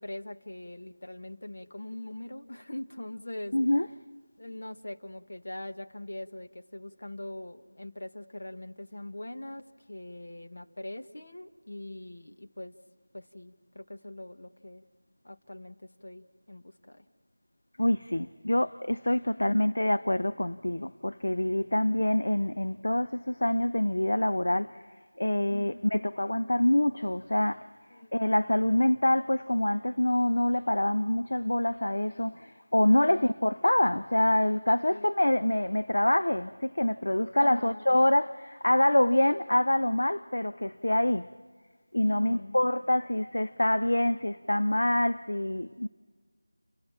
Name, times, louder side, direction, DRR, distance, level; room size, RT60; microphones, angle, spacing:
voice 1, 0.0-3.6 4.4-12.7 13.1-14.8 15.2-17.1 19.3-19.6 25.5-25.8 27.9-28.1 32.9-33.3 34.8-35.1 37.4-38.0 42.0-42.6, left 1 dB, 55° left, 1.3 m, -42 dB
voice 2, 3.5-3.9 17.8-41.3 41.9-45.9, left 1 dB, 75° left, 0.6 m, -26 dB
30.0 x 22.0 x 5.9 m
figure-of-eight pair, 175°, 0 cm